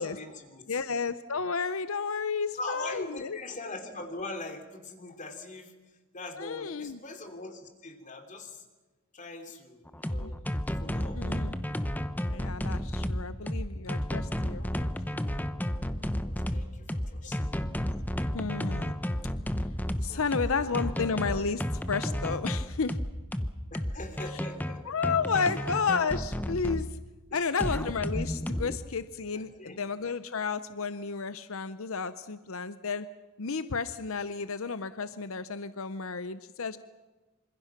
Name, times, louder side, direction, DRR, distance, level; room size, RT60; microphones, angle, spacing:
voice 1, 0.0-0.8 2.6-5.7 6.1-8.6 9.1-10.4 10.8-11.2 14.4-14.9 15.8-17.6 20.1-20.2 20.5-20.9 23.7-24.8 27.3-27.6 29.3-29.8, left 2 dB, 35° left, 5 dB, 3.2 m, -42 dB
voice 2, 0.7-3.4 6.4-7.0 10.2-10.3 11.2-11.6 12.3-14.6 18.3-19.0 20.0-23.0 24.9-26.9 27.3-33.1 33.4-36.8, left 5 dB, 65° left, 13 dB, 0.7 m, -32 dB
sound 1, 9.9-26.9 27.6-28.8, equal, 10° left, 0.9 m, -32 dB
27.0 x 26.0 x 6.0 m, 1.2 s
head